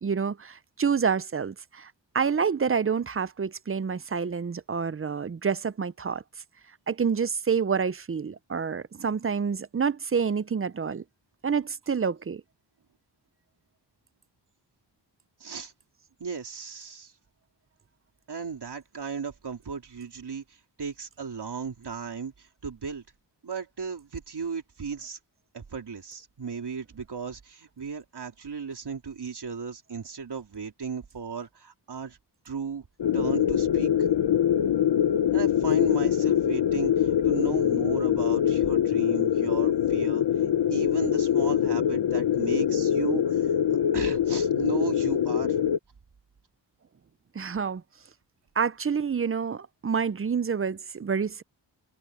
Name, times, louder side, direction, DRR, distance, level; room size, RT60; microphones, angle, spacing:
voice 1, 0.0-6.2 6.9-11.0 11.4-12.4 47.3-47.8 48.6-51.4, right 6 dB, 30° right, 0.5 m, -28 dB
voice 2, 15.4-15.7 16.2-17.1 18.3-23.0 23.4-25.2 25.5-32.2 32.4-32.9 33.1-33.9 35.3-40.2 40.7-45.6, right 6 dB, 65° right, 3.9 m, -35 dB
sound 1, 33.0-45.8, left 9 dB, 70° left, 0.9 m, -24 dB
wide cardioid pair, 115°, 44 cm